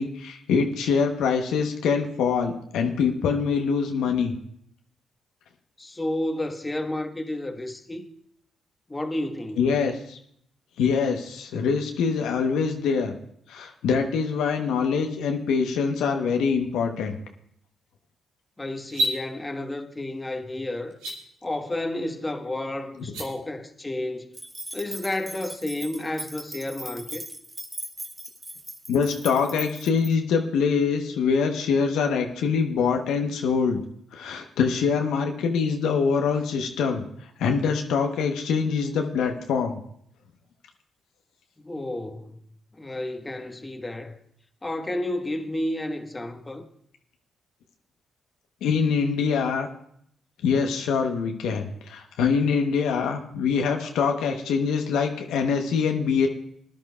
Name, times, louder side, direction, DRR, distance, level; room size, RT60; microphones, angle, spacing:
voice 1, 0.0-4.4 9.6-10.2 10.8-13.1 13.5-17.1 28.9-33.8 34.1-37.0 37.4-39.8 48.6-49.7 50.4-56.3, left 5 dB, 80° left, 0.9 m, -24 dB
voice 2, 5.8-8.0 8.9-9.6 18.6-21.0 21.4-24.4 24.7-27.2 41.6-42.4 42.7-44.2 44.6-46.6, left 1 dB, 20° left, 1.3 m, -31 dB
sound 1, 18.8-19.2 20.9-21.1 23.0-23.3, equal, 90° right, 2.1 m, -26 dB
sound 2, 24.3-30.1, right 1 dB, 15° right, 1.6 m, -39 dB
20.0 x 10.5 x 2.3 m
supercardioid pair, 50°, 0 cm